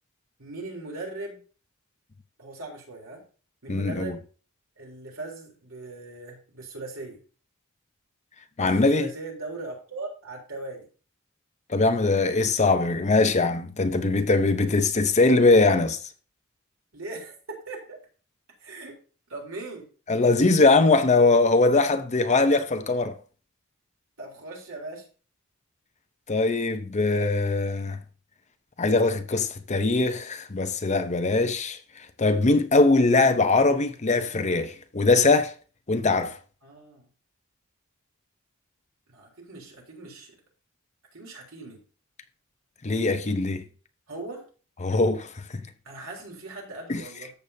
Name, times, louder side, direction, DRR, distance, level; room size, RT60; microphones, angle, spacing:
voice 1, 0.4-1.4 2.4-3.3 3.6-4.2 4.8-7.2 8.6-10.9 16.9-18.0 18.6-19.0 19.3-19.9 24.2-25.1 36.6-37.1 39.1-40.4 41.1-41.8 44.1-44.5 45.9-47.3, right 2 dB, 65° right, 3.6 m, -39 dB
voice 2, 3.7-4.1 8.6-9.1 11.7-16.0 20.1-23.2 26.3-28.0 28.8-35.5 35.9-36.4 42.8-43.6 44.8-45.6 46.9-47.0, left 3 dB, 35° left, 0.8 m, -21 dB
14.0 x 6.9 x 2.8 m
head